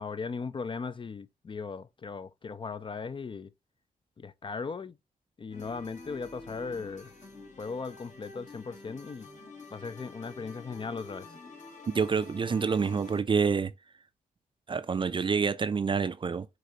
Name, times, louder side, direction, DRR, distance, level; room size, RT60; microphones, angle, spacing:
voice 1, 0.0-3.5 4.2-5.0 5.4-7.1 7.6-9.3 9.7-11.4, left 5 dB, 30° left, 0.4 m, -38 dB
sound 1, 5.5-13.2, left 3 dB, 50° left, 1.3 m, -48 dB
voice 2, 11.9-13.7 14.7-16.5, right 5 dB, 30° right, 0.4 m, -27 dB
5.1 x 2.9 x 2.8 m
cardioid pair, 60°, 16 cm